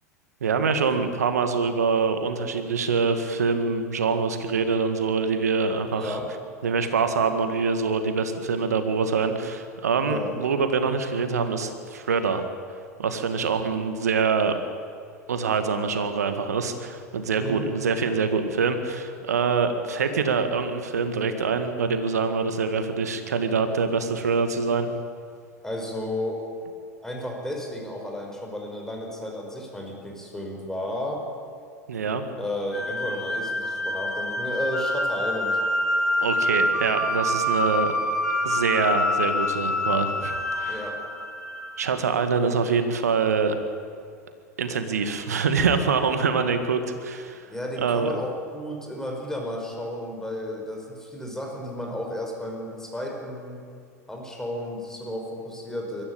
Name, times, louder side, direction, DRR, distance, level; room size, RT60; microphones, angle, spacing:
voice 1, 0.4-6.2 6.6-12.4 13.0-14.5 15.3-24.9 31.9-32.2 36.2-37.9 38.4-40.3 40.6-40.9 41.8-43.6 44.6-47.5 47.8-48.1, right 5 dB, 75° right, 8 dB, 2.0 m, -25 dB
voice 2, 5.9-6.3 10.1-10.4 17.4-17.7 25.6-26.4 27.0-31.2 32.4-35.6 40.6-41.0 47.5-53.6 54.1-56.0, left 1 dB, 5° left, 1 dB, 5.3 m, -33 dB
sound 1, 32.7-41.9, left 1 dB, 90° left, 2.0 m, -26 dB
22.5 x 14.5 x 8.9 m, 2.3 s
figure-of-eight pair, 85°, 9 cm